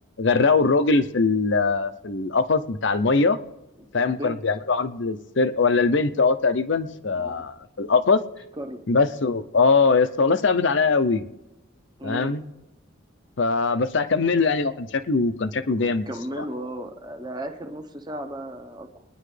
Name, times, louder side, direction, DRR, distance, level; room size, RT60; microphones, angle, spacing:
voice 1, 0.2-3.4 3.9-8.2 8.9-11.2 12.0-12.4 13.4-16.1 16.4-16.5, left 4 dB, 60° left, 11 dB, 0.6 m, -21 dB
voice 2, 3.8-4.4 7.1-7.4 8.6-8.8 12.0-12.4 14.1-14.2 15.8-19.0, right 1 dB, 20° right, 5 dB, 0.9 m, -35 dB
22.0 x 10.0 x 3.3 m, 0.95 s
head